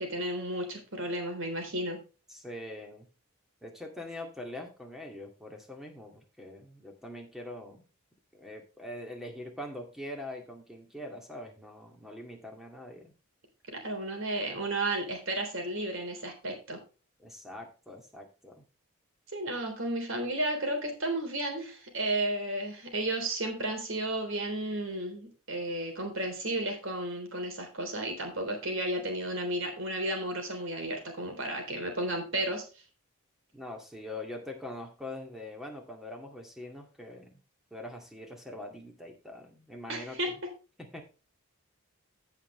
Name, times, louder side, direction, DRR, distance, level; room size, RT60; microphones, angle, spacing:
voice 1, 0.0-2.0 13.7-16.8 19.3-32.6 39.9-40.5, right 1 dB, 60° right, 4 dB, 3.5 m, -33 dB
voice 2, 2.3-3.1 3.6-7.8 8.3-13.1 17.2-18.6 33.5-37.4 37.7-40.4 40.8-41.0, left 1 dB, ahead, 2 dB, 2.1 m, -43 dB
15.0 x 5.8 x 3.2 m, 0.32 s
head